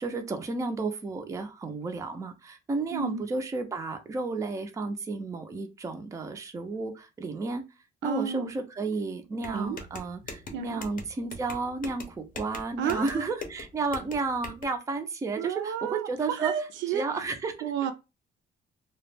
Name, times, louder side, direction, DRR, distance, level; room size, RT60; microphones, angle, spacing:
voice 1, 0.0-7.6 8.0-16.5 16.9-17.9, right 3 dB, 15° right, 0.4 m, -32 dB
voice 2, 2.9-3.2 8.0-8.5 9.5-9.8 10.5-10.8 12.8-13.2 15.4-16.1 16.4-17.0 17.6-17.9, right 8 dB, 80° right, 0.4 m, -31 dB
sound 1, 9.4-14.6, left 3 dB, 45° left, 0.6 m, -42 dB
2.2 x 2.0 x 3.2 m
cardioid pair, 145°, 19 cm